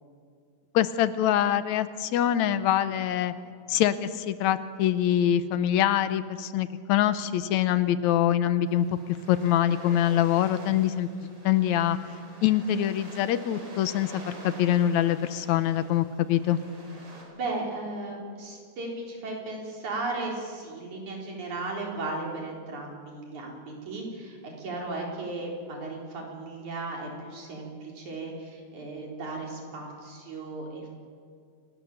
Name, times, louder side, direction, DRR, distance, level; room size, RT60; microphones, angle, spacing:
voice 1, 0.7-3.3 3.7-8.9 9.3-11.1 11.4-12.0 12.4-16.6, left 11 dB, 80° left, 13 dB, 2.1 m, -24 dB
sound 1, 8.6-17.2, right 1 dB, 55° right, 5.5 m, -47 dB
voice 2, 17.3-30.9, right 2 dB, 80° right, -1 dB, 5.3 m, -36 dB
28.5 x 18.5 x 7.2 m, 2.1 s
omnidirectional pair, 3.3 m